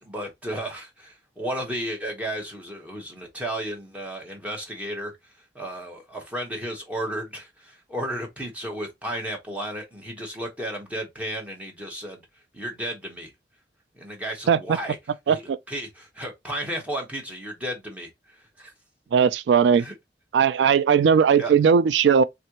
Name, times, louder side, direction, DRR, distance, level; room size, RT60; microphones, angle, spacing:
voice 1, 0.0-5.1 5.5-12.2 12.5-13.3 13.9-15.0 15.3-18.7 19.7-19.9 21.3-21.5, right 1 dB, 10° right, 1.3 m, -33 dB
voice 2, 15.3-15.6 19.1-19.8 20.3-22.2, right 7 dB, 90° right, 0.3 m, -18 dB
3.6 x 3.2 x 3.0 m
head